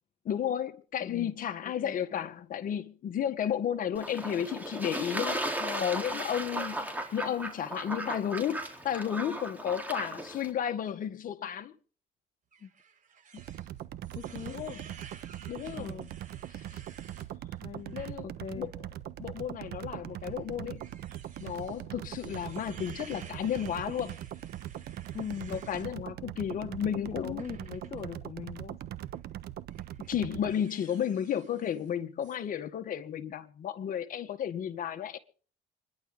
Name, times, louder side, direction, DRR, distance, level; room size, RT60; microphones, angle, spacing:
voice 1, 0.3-5.4 5.8-11.7 14.5-14.8 15.5-16.0 16.7-16.8 17.9-18.3 18.5-18.7 19.2-20.8 21.4-24.2 25.5-27.4 30.1-35.2, left 9 dB, 55° left, 1.8 m, -33 dB
voice 2, 1.0-1.3 1.8-2.3 5.6-5.9 12.6-12.7 13.3-13.4 14.1-14.6 15.8-16.1 17.6-18.0 18.2-18.7 25.1-25.6 27.2-28.8, left 7 dB, 40° left, 1.4 m, -41 dB
Fowl / Bird / Water, 4.0-10.5, right 1 dB, 10° right, 3.9 m, -36 dB
Creaking door, 12.5-17.3 17.8-18.1 18.6-18.7 19.7-25.9 27.4-28.0 29.0-29.2 29.7-31.9 32.2-32.4, right 6 dB, 50° right, 7.1 m, -54 dB
sound 1, 13.4-30.6, right 12 dB, 70° right, 1.2 m, -41 dB
26.5 x 11.0 x 4.0 m
cardioid pair, 110°, 17 cm